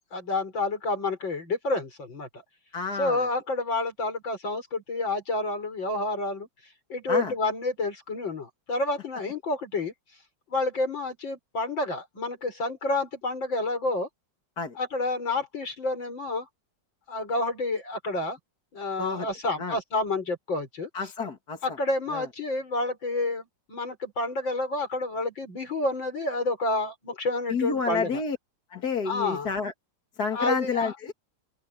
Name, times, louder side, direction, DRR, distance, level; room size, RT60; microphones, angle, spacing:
voice 1, 0.1-2.3 3.0-6.5 6.9-9.9 10.5-14.1 14.8-16.5 17.1-18.4 18.7-20.9 21.6-28.2 29.1-29.5 30.3-30.9, left 2 dB, 70° left, 6.3 m, -29 dB
voice 2, 2.7-3.2 7.1-7.3 14.6-14.7 19.0-19.3 19.6-19.8 20.9-21.6 22.1-22.3 27.5-28.4 28.7-29.7 30.2-31.1, left 5 dB, 50° left, 2.6 m, -29 dB
open air
omnidirectional pair, 2.2 m